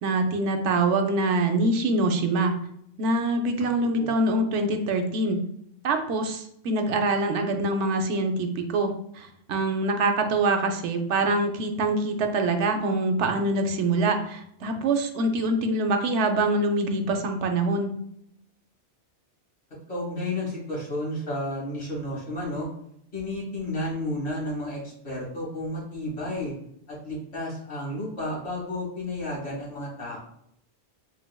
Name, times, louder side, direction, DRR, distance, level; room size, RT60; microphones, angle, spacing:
voice 1, 0.0-2.6 3.0-5.4 5.8-18.0, right 2 dB, 80° right, 5 dB, 0.9 m, -24 dB
voice 2, 3.6-4.1 19.9-22.7 23.1-26.5 26.9-30.2, left 1 dB, 65° left, -5 dB, 1.7 m, -32 dB
3.8 x 3.2 x 2.2 m, 0.72 s
omnidirectional pair, 1.2 m